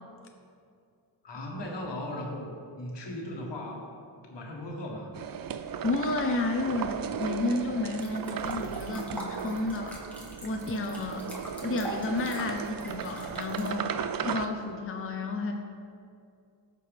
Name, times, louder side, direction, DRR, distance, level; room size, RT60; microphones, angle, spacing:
voice 1, 1.2-3.9 4.3-5.2, left 1 dB, 70° left, 0 dB, 1.4 m, -37 dB
sound 1, 5.1-14.5, right 8 dB, 50° right, 0.5 m, -36 dB
voice 2, 5.8-10.0 10.4-11.3 11.6-13.9 14.2-15.5, left 2 dB, 30° left, 3 dB, 0.6 m, -31 dB
sound 2, 8.0-13.7, right 1 dB, 5° left, 1.6 m, -44 dB
12.5 x 4.5 x 3.4 m, 2.4 s
cardioid pair, 65°, 44 cm